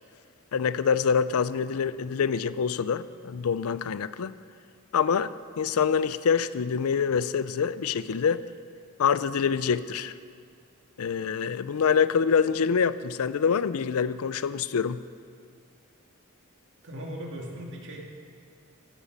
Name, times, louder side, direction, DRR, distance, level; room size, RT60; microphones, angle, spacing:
voice 1, 0.5-4.3 4.9-8.4 9.0-10.1 11.0-15.0, left 6 dB, 75° left, 16 dB, 0.4 m, -25 dB
voice 2, 16.8-18.0, equal, 55° right, -1 dB, 2.4 m, -38 dB
15.5 x 13.0 x 5.3 m, 2.2 s
head